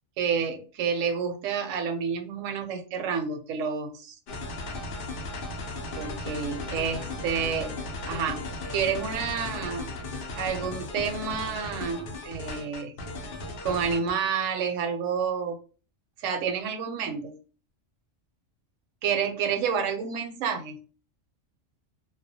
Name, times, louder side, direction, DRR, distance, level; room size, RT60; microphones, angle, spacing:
voice 1, 0.2-4.2 6.0-7.8 8.1-9.9 10.4-12.9 13.6-15.6 16.2-17.4 19.0-20.8, right 6 dB, 80° right, 6 dB, 1.0 m, -29 dB
sound 1, 4.3-14.1, left 2 dB, 60° left, 0.6 m, -36 dB
2.3 x 2.0 x 2.6 m, 0.36 s
omnidirectional pair, 1.3 m